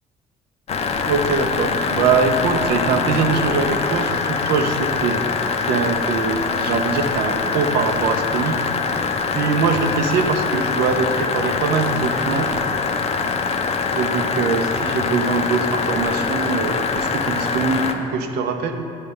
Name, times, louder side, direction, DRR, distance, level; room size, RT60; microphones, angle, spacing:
sound 1, 0.7-17.9, left 5 dB, 40° left, 0.5 m, -23 dB
voice 1, 1.0-5.2 5.6-8.6 9.3-12.5 13.9-18.8, right 5 dB, 75° right, 6 dB, 0.6 m, -22 dB
9.6 x 3.3 x 5.4 m, 2.9 s
cardioid pair, 110°, 17 cm